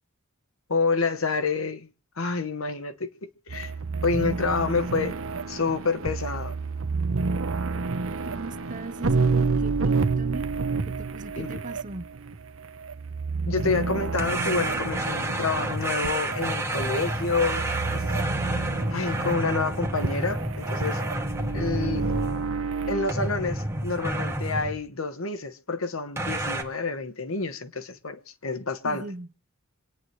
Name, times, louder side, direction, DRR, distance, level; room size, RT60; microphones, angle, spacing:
voice 1, 0.7-1.9 2.2-3.7 4.0-5.2 5.5-6.6 11.4-11.6 13.5-17.7 17.9-18.0 18.9-21.0 21.5-22.1 22.9-29.0, left 4 dB, 80° left, 1.3 m, -28 dB
sound 1, 3.5-23.1, right 4 dB, 75° right, 0.9 m, -30 dB
voice 2, 8.3-10.5 10.9-12.1 28.8-29.3, right 2 dB, 40° right, 1.0 m, -39 dB
sound 2, 14.2-22.7 23.1-24.8 26.2-26.6, right 1 dB, 15° right, 2.1 m, -30 dB
26.5 x 9.5 x 3.2 m
head